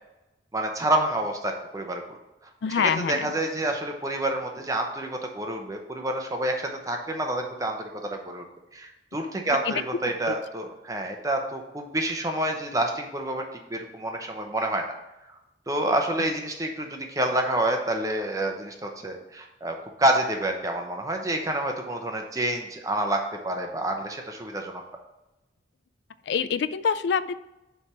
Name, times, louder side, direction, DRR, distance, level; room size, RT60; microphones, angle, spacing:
voice 1, 0.5-2.2 2.7-8.4 8.7-14.8 15.7-24.8, right 1 dB, 20° right, 3 dB, 0.8 m, -28 dB
voice 2, 2.6-3.3 9.7-9.8 10.3-10.4 26.3-27.3, left 6 dB, 70° left, 15 dB, 0.3 m, -25 dB
7.1 x 3.5 x 5.9 m, 0.97 s
head